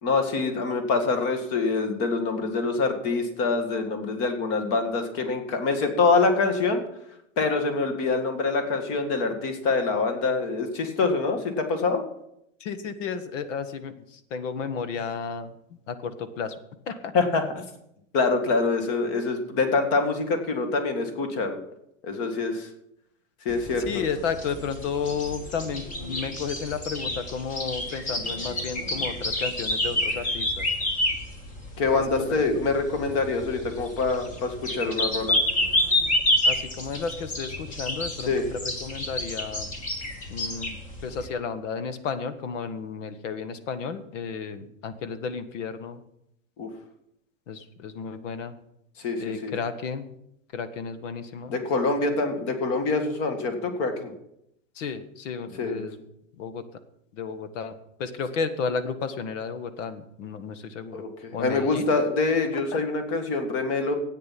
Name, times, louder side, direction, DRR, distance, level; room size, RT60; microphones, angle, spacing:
voice 1, 0.0-6.8 7.4-12.0 17.1-17.6 18.1-21.6 22.0-22.7 23.5-23.9 31.8-35.3 38.2-38.5 46.6-46.7 49.0-49.5 51.5-54.1 55.5-55.8 60.9-64.0, left 3 dB, 35° left, 7 dB, 1.9 m, -25 dB
voice 2, 12.6-15.5 15.9-16.5 16.9-17.1 23.8-30.7 31.9-32.6 36.4-39.7 40.3-46.0 47.5-48.5 49.2-50.1 50.5-51.5 54.7-56.0 56.4-56.6 57.1-57.7 58.0-61.0 61.3-61.9 62.5-62.6, left 5 dB, 65° left, 12 dB, 1.5 m, -33 dB
sound 1, 23.5-41.3, left 1 dB, 20° left, 1.4 m, -29 dB
13.5 x 9.1 x 5.9 m, 0.78 s
supercardioid pair, 160°, 40 cm